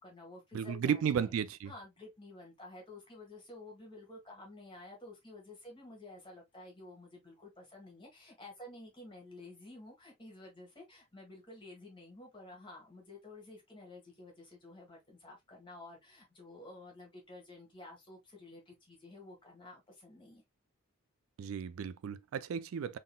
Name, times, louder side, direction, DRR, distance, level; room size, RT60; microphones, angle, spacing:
voice 1, 0.0-1.3 1.6-20.4, left 2 dB, 25° left, 1.5 m, -52 dB
voice 2, 0.5-1.7 21.4-23.0, right 7 dB, 80° right, 0.3 m, -34 dB
3.8 x 3.7 x 2.2 m
head